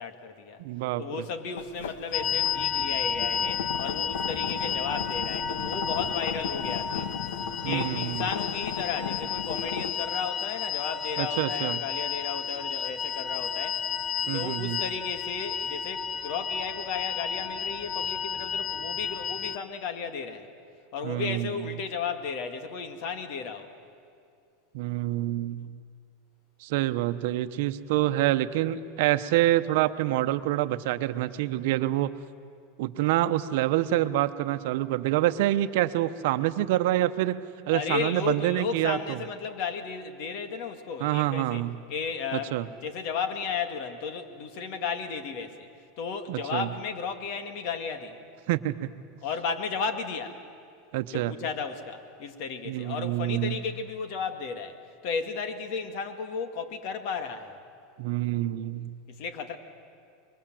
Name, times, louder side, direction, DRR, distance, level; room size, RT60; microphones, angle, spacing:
voice 1, 0.0-0.6 1.0-7.1 7.6-13.8 14.3-20.5 20.9-23.7 37.7-41.6 41.9-42.5 42.8-45.7 46.0-48.2 49.2-50.4 51.1-54.8 55.0-57.6 59.1-59.6, left 5 dB, 60° left, 8 dB, 2.1 m, -34 dB
voice 2, 0.6-1.2 7.6-8.2 11.2-11.8 14.3-14.8 21.0-21.5 24.7-25.8 26.6-32.1 32.8-39.2 41.0-41.8 42.3-42.7 46.3-46.7 48.5-48.9 50.9-51.3 52.7-53.6 58.0-59.0, right 15 dB, 70° right, 11 dB, 0.9 m, -27 dB
sound 1, 1.6-9.9, left 7 dB, 90° left, 1.4 m, -36 dB
sound 2, 2.1-19.6, left 7 dB, 30° left, 0.9 m, -32 dB
25.0 x 23.0 x 7.7 m, 2.3 s
supercardioid pair, 125°, 0 cm